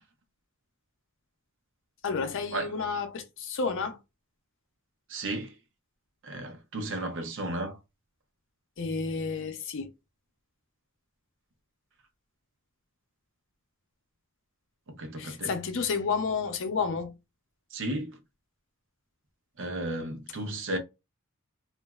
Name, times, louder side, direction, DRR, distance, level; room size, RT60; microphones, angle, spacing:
voice 1, 2.0-4.0 8.8-9.9 15.2-17.1, left 5 dB, 60° left, 0.6 m, -31 dB
voice 2, 5.1-5.6 6.2-7.8 14.9-15.5 17.7-18.2 19.6-20.8, right 1 dB, 60° right, 0.7 m, -34 dB
2.9 x 2.5 x 2.3 m
head